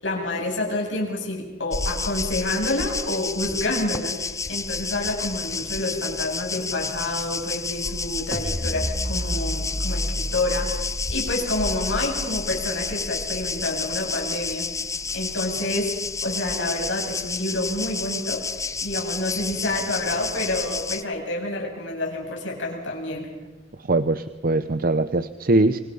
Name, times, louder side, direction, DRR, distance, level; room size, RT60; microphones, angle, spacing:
voice 1, 0.0-14.7 15.1-15.9 16.2-18.4 18.8-23.3, left 2 dB, 75° left, 0 dB, 7.7 m, -28 dB
sound 1, 1.7-21.0, left 4 dB, 15° left, 0.8 m, -30 dB
sound 2, 8.3-14.6, equal, 15° right, 1.8 m, -32 dB
voice 2, 23.8-25.8, right 2 dB, 50° right, 12 dB, 0.8 m, -21 dB
27.5 x 25.5 x 5.5 m, 1.2 s
head